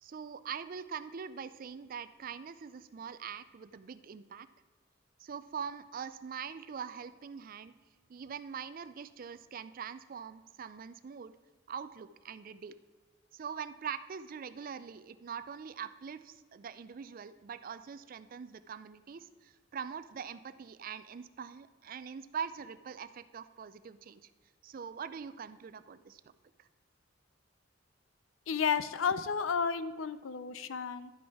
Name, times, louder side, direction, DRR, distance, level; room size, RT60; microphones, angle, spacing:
voice 1, 0.0-4.5 5.2-7.7 8.1-11.3 11.7-12.8 13.3-24.3 24.6-26.3 26.6-26.7, right 7 dB, 45° right, 14 dB, 0.4 m, -43 dB
voice 2, 28.5-31.1, left 6 dB, 80° left, 14 dB, 0.5 m, -32 dB
11.5 x 6.2 x 4.7 m, 1.4 s
head